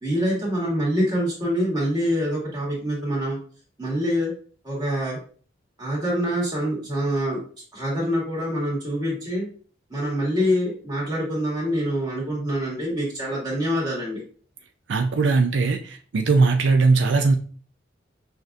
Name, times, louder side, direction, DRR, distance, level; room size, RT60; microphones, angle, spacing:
voice 1, 0.0-3.4 3.8-4.3 4.6-5.2 5.8-7.4 7.7-9.5 9.9-14.2, equal, 20° right, -5 dB, 1.8 m, -25 dB
voice 2, 14.9-17.3, right 4 dB, 75° right, 4 dB, 0.4 m, -19 dB
6.2 x 2.6 x 2.5 m, 0.43 s
head